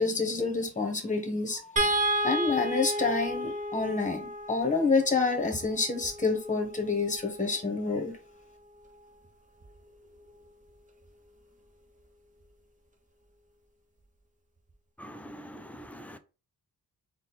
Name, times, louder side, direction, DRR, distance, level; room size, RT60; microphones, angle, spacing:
voice 1, 0.0-8.1, left 4 dB, 20° left, 1.1 m, -28 dB
sound 1, 1.8-8.1 9.6-9.8 10.1-10.3, right 1 dB, 20° right, 0.8 m, -33 dB
voice 2, 15.0-16.2, equal, 5° left, 0.4 m, -44 dB
4.1 x 2.4 x 4.0 m
wide cardioid pair, 105°, 36 cm